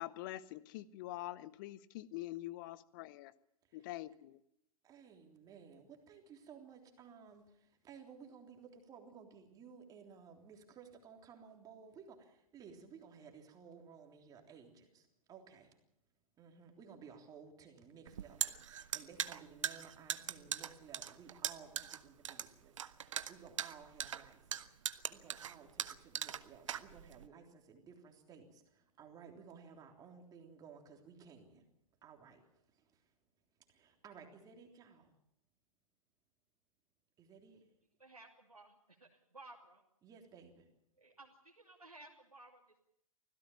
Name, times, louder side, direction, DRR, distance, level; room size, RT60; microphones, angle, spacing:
voice 1, 0.0-3.3 3.7-4.4, left 16 dB, 35° left, 19 dB, 0.9 m, -45 dB
voice 2, 4.8-15.7 16.4-31.7 32.0-33.0 33.7-35.1 37.2-37.6 40.0-40.7, right 6 dB, 20° right, 3 dB, 3.5 m, -57 dB
sound 1, 18.1-27.3, right 9 dB, 55° right, 1.0 m, -40 dB
voice 3, 38.0-39.8 41.0-42.8, right 2 dB, 85° right, -3 dB, 2.9 m, -57 dB
25.0 x 16.5 x 7.2 m, 0.77 s
figure-of-eight pair, 110°, 19 cm